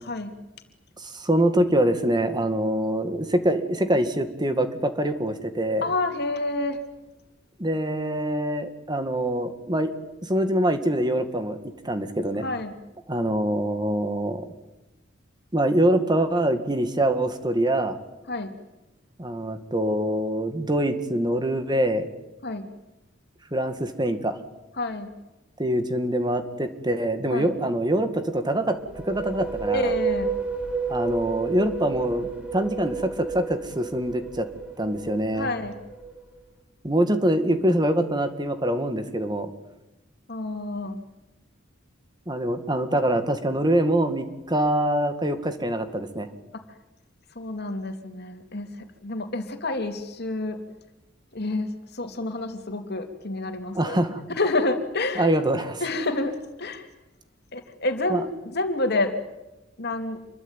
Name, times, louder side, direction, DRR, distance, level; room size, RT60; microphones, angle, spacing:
voice 1, 1.0-5.8 7.6-9.9 10.2-11.6 11.8-12.5 13.1-14.5 15.5-18.0 19.2-22.1 23.5-24.4 25.6-28.8 29.1-29.9 30.9-34.5 34.8-35.5 36.8-39.5 42.3-46.3 53.7-54.2 55.2-55.8 58.1-58.2, right 1 dB, 20° right, 8 dB, 2.1 m, -24 dB
voice 2, 5.8-6.8 12.4-12.7 18.3-18.5 22.4-22.7 24.8-25.1 27.3-27.5 29.7-30.3 35.4-35.8 40.3-41.0 46.5-46.6 47.3-48.7 49.0-50.6 51.3-51.7 51.9-54.0 54.4-55.3 55.8-56.8 57.5-59.1 59.8-60.2, left 2 dB, 55° left, 6 dB, 3.0 m, -28 dB
sound 1, 28.7-36.4, right 5 dB, 5° right, 3.5 m, -31 dB
27.5 x 23.0 x 9.1 m, 0.99 s
head